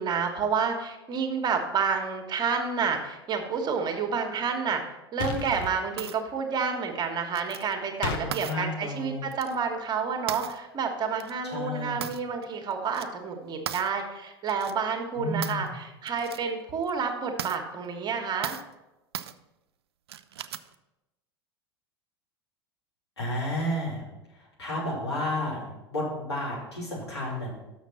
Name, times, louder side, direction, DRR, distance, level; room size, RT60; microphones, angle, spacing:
voice 1, 0.0-4.8 5.1-18.6, right 6 dB, 30° right, 4 dB, 1.2 m, -29 dB
sound 1, 5.2-5.7 8.0-8.2, left 5 dB, 50° left, 1.0 m, -31 dB
sound 2, 6.0-6.2 7.4-7.7 8.3-8.6 9.3-9.6 10.3-10.6 11.2-11.3 12.0-12.4 12.7-13.1 13.7-13.9 14.5-14.7 15.4-15.7 16.1-16.4 16.8-16.9 17.4-17.6 18.4-18.7 19.1-19.3 20.1-20.7, right 10 dB, 75° right, 0.4 m, -37 dB
voice 2, 8.2-9.2 11.4-12.1 15.2-15.7 23.2-24.0 24.3-27.5, left 1 dB, 90° left, -6 dB, 3.0 m, -32 dB
6.5 x 6.2 x 5.6 m, 1.0 s
figure-of-eight pair, 80°, 13 cm